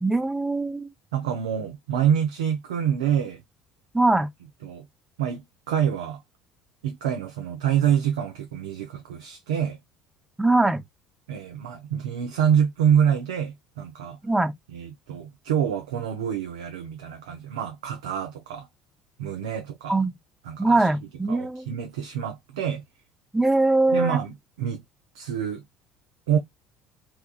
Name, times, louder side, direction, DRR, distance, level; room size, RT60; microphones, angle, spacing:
voice 1, 0.0-0.9 3.9-4.3 10.4-10.8 14.2-14.5 19.9-20.1 20.6-21.7 23.3-24.2, right 2 dB, 10° right, 0.4 m, -22 dB
voice 2, 1.1-3.4 4.6-4.9 5.2-6.2 6.8-9.8 11.3-14.2 14.7-18.7 19.2-20.0 20.5-20.9 21.3-22.8 23.9-24.8 25.1-25.6 26.3-26.4, right 8 dB, 75° right, 0.4 m, -26 dB
2.9 x 2.2 x 2.3 m
hypercardioid pair, 60°, 3 cm